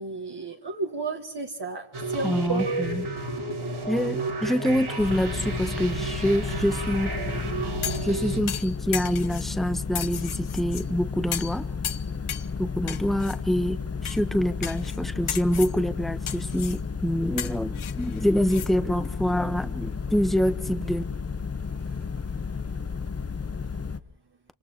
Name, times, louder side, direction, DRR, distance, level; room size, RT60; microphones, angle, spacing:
voice 1, 0.0-2.9 21.8-21.9, right 3 dB, 55° right, 2.0 m, -32 dB
sound 1, 1.9-8.4, right 2 dB, 85° right, 5.7 m, -32 dB
voice 2, 2.2-3.0 3.9-7.1 7.5-7.7 8.0-11.7 12.6-21.0, equal, ahead, 1.2 m, -26 dB
sound 2, 5.0-24.0, left 5 dB, 30° left, 0.9 m, -33 dB
sound 3, 7.8-8.1 8.5-9.5 9.9-10.8 11.3-11.6 11.8-12.5 12.9-13.4 14.0-14.2 14.6-15.0 15.3-15.8 16.3-16.8 17.4-18.7 19.0-19.1, left 9 dB, 90° left, 0.9 m, -34 dB
26.5 x 26.5 x 4.8 m
wide cardioid pair, 60°, 48 cm